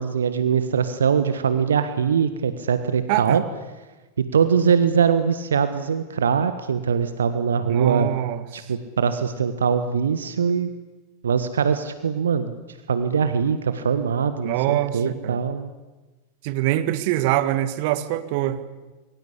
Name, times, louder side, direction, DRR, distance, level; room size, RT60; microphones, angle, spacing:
voice 1, 0.0-3.4 4.2-8.1 8.5-10.7 11.2-12.5 12.9-15.7, right 6 dB, 65° right, 11 dB, 1.4 m, -22 dB
voice 2, 3.1-3.4 7.7-8.7 14.4-15.4 16.4-18.6, right 14 dB, 45° right, 12 dB, 1.8 m, -24 dB
26.5 x 23.0 x 8.5 m, 1.2 s
figure-of-eight pair, 90°, 0 cm